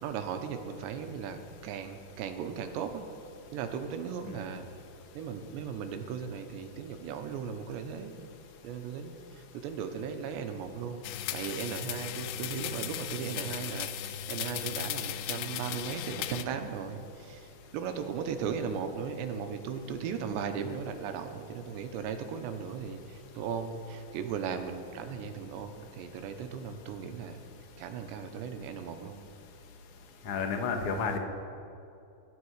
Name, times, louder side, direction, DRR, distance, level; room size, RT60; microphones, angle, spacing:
voice 1, 0.0-3.0 3.5-4.6 5.1-8.2 8.6-11.0 11.3-27.4 27.8-29.2, right 7 dB, 85° right, 7 dB, 3.3 m, -37 dB
sound 1, 11.0-16.5, left 11 dB, 85° left, 2.8 m, -36 dB
voice 2, 30.2-31.2, left 5 dB, 65° left, 4 dB, 1.4 m, -31 dB
25.0 x 11.5 x 4.9 m, 2.8 s
omnidirectional pair, 5.0 m